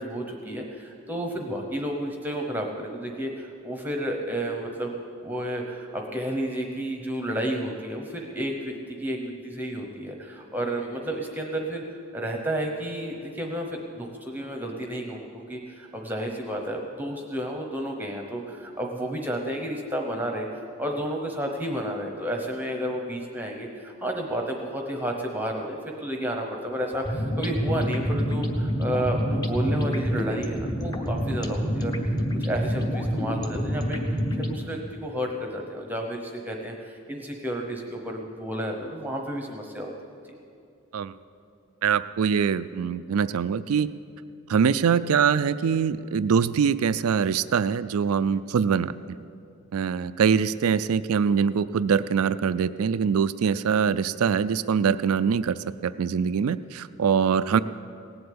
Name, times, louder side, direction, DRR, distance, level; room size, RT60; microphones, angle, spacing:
voice 1, 0.0-5.0 5.2-11.8 12.1-20.5 20.8-31.9 32.4-39.9 40.2-40.3, right 1 dB, 10° right, 2 dB, 0.9 m, -31 dB
sound 1, 26.9-34.6, equal, 20° left, 1.0 m, -27 dB
voice 2, 41.8-43.9 44.5-48.9 49.7-55.6 55.8-57.6, right 6 dB, 85° right, 14 dB, 0.4 m, -23 dB
18.0 x 7.9 x 8.6 m, 2.5 s
head